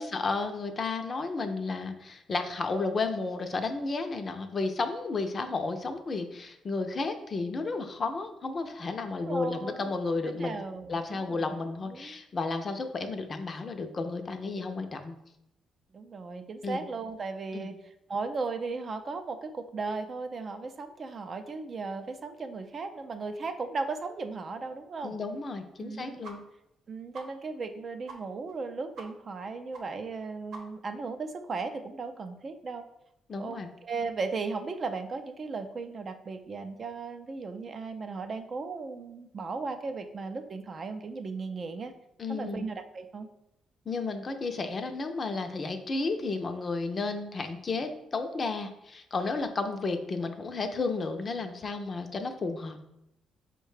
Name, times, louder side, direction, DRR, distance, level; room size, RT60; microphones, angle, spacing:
voice 1, 0.0-10.6 10.9-15.2 16.6-16.8 17.5-17.7 25.0-26.4 33.3-33.7 42.2-42.6 43.9-52.8, left 3 dB, 40° left, 7 dB, 0.5 m, -32 dB
voice 2, 9.2-9.9 10.2-11.5 11.9-12.2 15.9-17.7 18.1-25.2 25.8-26.2 26.9-32.8 33.4-41.9 42.3-43.3, right 4 dB, 40° right, 8 dB, 0.4 m, -36 dB
sound 1, 26.2-26.4 26.7-26.8 27.1-27.3 27.6-27.7 28.1-28.2 28.5-28.6 28.9-29.1 29.4-29.5 29.7-29.8 30.1-30.2 30.5-30.9, right 3 dB, 75° right, 0.8 m, -45 dB
4.6 x 2.2 x 4.7 m, 0.83 s
cardioid pair, 90°, 0 cm